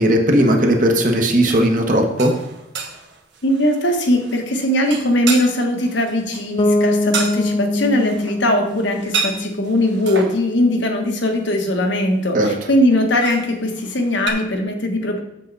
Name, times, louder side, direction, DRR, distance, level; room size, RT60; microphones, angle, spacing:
voice 1, 0.0-2.3 12.3-12.5, right 1 dB, 40° right, 3 dB, 1.2 m, -16 dB
sound 1, 0.9-1.2 2.0-10.5 12.9-14.3, right 5 dB, 60° right, 1.1 m, -30 dB
voice 2, 3.4-15.2, left 1 dB, 65° left, 3 dB, 1.3 m, -20 dB
Bass guitar, 6.6-10.4, left 2 dB, 25° left, 0.8 m, -23 dB
7.5 x 7.4 x 4.1 m, 0.92 s
head